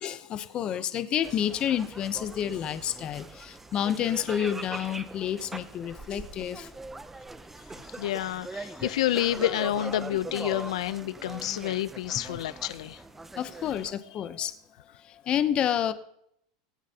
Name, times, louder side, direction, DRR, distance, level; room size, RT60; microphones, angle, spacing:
voice 1, 0.0-6.7 13.4-14.5 15.3-15.9, left 10 dB, 30° left, 0.8 m, -29 dB
sound 1, 1.2-13.9, right 2 dB, 10° right, 0.6 m, -41 dB
voice 2, 8.0-13.0, left 13 dB, 85° left, 0.5 m, -29 dB
23.0 x 8.7 x 2.9 m
supercardioid pair, 150°, 3 cm